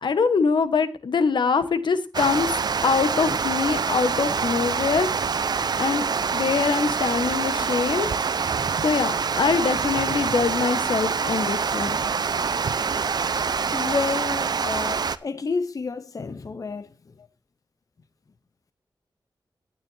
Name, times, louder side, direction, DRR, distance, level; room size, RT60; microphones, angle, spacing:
voice 1, 0.0-2.5 2.8-5.1 5.7-8.1 8.8-12.0, left 5 dB, 80° left, 1.2 m, -23 dB
Water, 2.1-15.2, right 5 dB, 60° right, 0.6 m, -25 dB
voice 2, 13.7-16.9, left 4 dB, 50° left, 0.7 m, -29 dB
18.5 x 9.8 x 2.7 m
wide cardioid pair, 120°, 8 cm